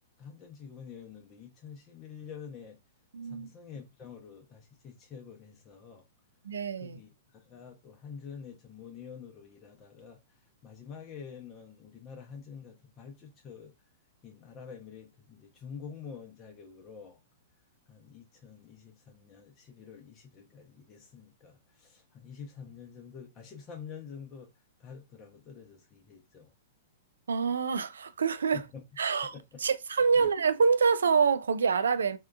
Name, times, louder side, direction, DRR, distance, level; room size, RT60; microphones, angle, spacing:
voice 1, 0.2-2.8 3.2-6.1 6.8-13.7 14.2-17.2 17.9-24.5 24.8-26.5 28.5-28.8 29.2-29.6 30.1-30.3, left 6 dB, 30° left, 0.6 m, -47 dB
voice 2, 3.1-3.5 6.4-7.0 27.3-28.6 29.0-29.3 29.6-32.2, right 5 dB, 85° right, 0.3 m, -26 dB
2.8 x 2.3 x 2.2 m
hypercardioid pair, 125°, 0 cm